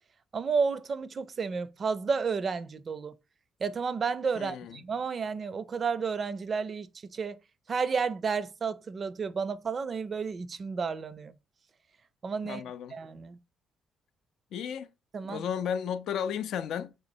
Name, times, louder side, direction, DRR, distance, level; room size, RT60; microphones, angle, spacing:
voice 1, 0.3-3.1 3.6-7.4 7.7-11.3 12.2-12.6 12.9-13.4 15.1-15.4, right 5 dB, 45° right, 0.4 m, -31 dB
voice 2, 4.4-4.8 12.4-13.0 14.5-14.9 15.3-17.0, left 8 dB, 75° left, 0.3 m, -34 dB
3.3 x 3.0 x 2.6 m
cardioid pair, 90°, 0 cm